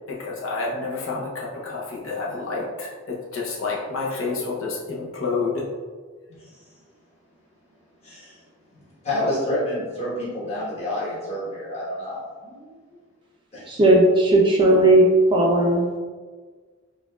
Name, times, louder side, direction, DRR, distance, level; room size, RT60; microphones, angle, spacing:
voice 1, 0.1-5.7, left 4 dB, 70° left, -3 dB, 0.7 m, -29 dB
voice 2, 8.0-8.4 8.7-13.0 13.5-13.6, left 1 dB, 30° left, -8 dB, 1.1 m, -29 dB
voice 3, 13.7-16.0, right 1 dB, 25° right, -2 dB, 0.4 m, -16 dB
4.8 x 2.3 x 2.3 m, 1.5 s
head